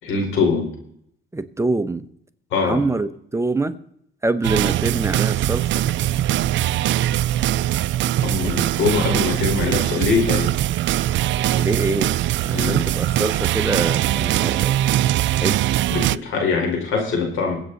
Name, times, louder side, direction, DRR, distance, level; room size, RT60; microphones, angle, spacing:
voice 1, 0.0-0.7 2.5-2.8 8.1-10.5 12.5-12.8 15.9-17.6, left 4 dB, 85° left, 2 dB, 4.7 m, -22 dB
voice 2, 1.3-2.0 2.6-3.8 4.2-5.8 8.4-8.5 11.5-12.2 12.4-14.7 15.4-15.6, right 2 dB, 15° right, 10 dB, 0.9 m, -25 dB
sound 1, 4.4-16.2, right 13 dB, 70° right, 0.4 m, -21 dB
22.0 x 8.4 x 4.1 m, 0.69 s
cardioid pair, 90°, 20 cm